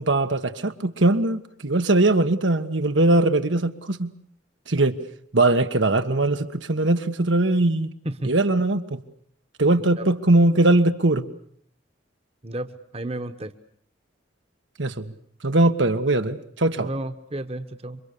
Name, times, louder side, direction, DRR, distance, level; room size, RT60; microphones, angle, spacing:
voice 1, 0.0-4.1 4.7-5.0 5.3-7.9 8.2-9.0 9.6-11.3 14.8-15.1 15.4-16.9, right 2 dB, 90° right, 8 dB, 1.6 m, -21 dB
voice 2, 12.4-13.5 16.8-18.0, right 1 dB, 35° right, 10 dB, 1.2 m, -32 dB
28.0 x 24.5 x 6.9 m, 0.63 s
head